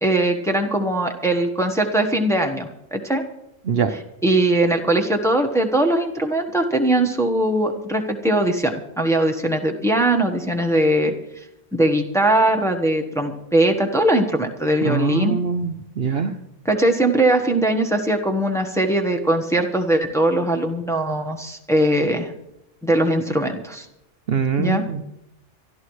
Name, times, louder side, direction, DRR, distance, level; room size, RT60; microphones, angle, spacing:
voice 1, 0.0-3.2 4.2-11.1 11.7-15.4 16.6-22.3 22.8-23.8 24.6-24.8, right 1 dB, ahead, 2 dB, 1.2 m, -20 dB
voice 2, 14.8-16.3 24.3-25.0, right 6 dB, 55° right, 7 dB, 0.8 m, -23 dB
26.0 x 12.0 x 3.2 m, 0.85 s
omnidirectional pair, 1.3 m